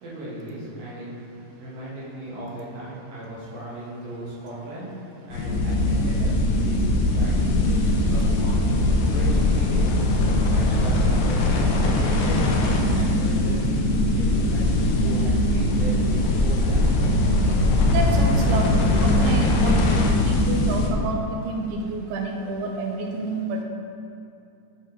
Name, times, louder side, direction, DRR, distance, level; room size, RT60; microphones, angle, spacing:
voice 1, 0.0-8.7 9.1-9.9 10.5-14.7 15.0-16.9, right 1 dB, 55° right, -7 dB, 2.5 m, -36 dB
sound 1, 5.3-20.9, left 1 dB, 75° left, 1.8 m, -21 dB
voice 2, 17.9-19.9 20.3-23.6, right 2 dB, 80° right, 2 dB, 2.0 m, -29 dB
8.1 x 5.3 x 3.5 m, 2.7 s
omnidirectional pair, 3.8 m